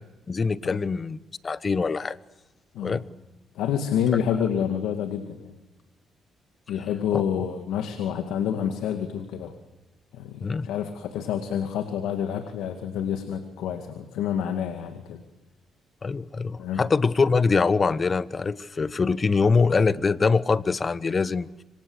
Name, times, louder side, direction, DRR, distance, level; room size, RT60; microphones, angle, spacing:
voice 1, 0.3-1.2 1.4-2.2 2.8-3.0 7.1-7.2 10.4-10.7 16.0-21.6, left 4 dB, 35° left, 16 dB, 1.1 m, -23 dB
voice 2, 3.5-5.5 6.7-9.5 10.1-15.2 16.6-16.8, left 8 dB, 90° left, 7 dB, 2.2 m, -28 dB
27.0 x 25.5 x 8.1 m, 1.1 s
cardioid pair, 90°, 0 cm